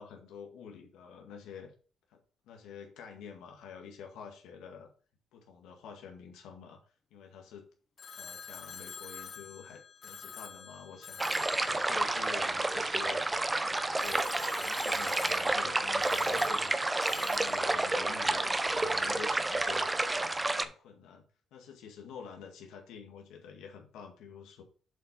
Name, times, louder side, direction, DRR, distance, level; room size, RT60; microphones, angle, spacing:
voice 1, 0.0-1.7 2.1-2.2 2.4-4.9 5.3-6.8 7.1-7.7 8.2-11.2 11.5-13.2 13.6-14.2 14.6-16.8 17.0-19.9 20.3-21.2 21.5-24.6, left 7 dB, 90° left, 2 dB, 1.8 m, -48 dB
Telephone, 8.0-13.2 14.0-18.9, left 6 dB, 50° left, 0.6 m, -48 dB
sound 1, 11.2-20.6, right 2 dB, 15° right, 0.7 m, -30 dB
7.4 x 4.4 x 5.4 m, 0.40 s
cardioid pair, 90°, 0 cm